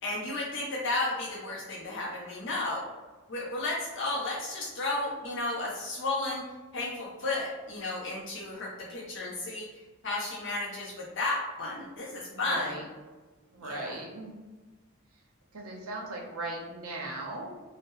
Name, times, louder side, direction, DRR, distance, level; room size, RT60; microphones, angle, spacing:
voice 1, 0.0-2.9 3.3-6.4 6.7-12.7 13.6-14.0, left 2 dB, 55° left, -5 dB, 0.5 m, -33 dB
voice 2, 12.3-12.9 13.5-14.3 15.5-17.5, right 2 dB, 85° right, -1 dB, 0.7 m, -38 dB
2.8 x 2.0 x 3.5 m, 1.3 s
head